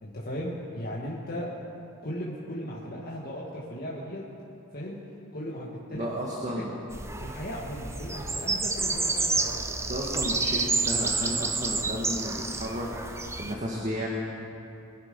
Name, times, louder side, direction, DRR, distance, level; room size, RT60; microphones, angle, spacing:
voice 1, 0.0-1.6 2.0-4.2 4.7-5.0 5.3-6.1 6.5-6.7 7.2-9.6, equal, 40° left, -5 dB, 1.7 m, -36 dB
voice 2, 5.9-6.7 9.9-14.1, equal, 35° right, -3 dB, 1.8 m, -33 dB
sound 1, 6.9-13.5, right 3 dB, 10° right, 0.6 m, -29 dB
22.0 x 10.5 x 5.3 m, 2.7 s
head